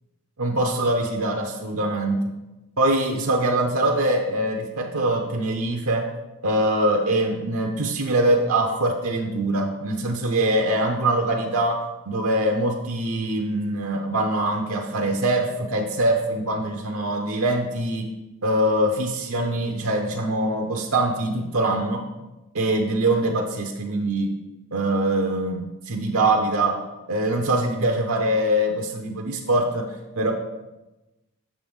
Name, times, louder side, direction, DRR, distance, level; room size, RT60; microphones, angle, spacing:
voice 1, 0.4-2.2 2.8-6.1 6.4-18.1 18.4-22.0 22.5-24.3 24.7-26.8 27.1-30.3, right 1 dB, 75° right, 2 dB, 0.7 m, -23 dB
7.3 x 6.8 x 3.6 m, 1.0 s
head